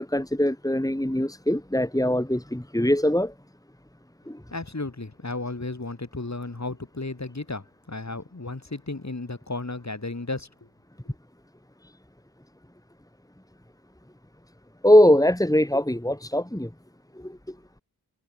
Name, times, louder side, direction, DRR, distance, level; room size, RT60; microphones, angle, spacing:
voice 1, 0.0-3.3 4.3-4.4 14.8-16.7 17.2-17.4, left 1 dB, 10° left, 3.5 m, -21 dB
voice 2, 4.5-10.7 11.0-11.1, left 2 dB, 45° left, 7.7 m, -34 dB
cardioid pair, 45°, 39 cm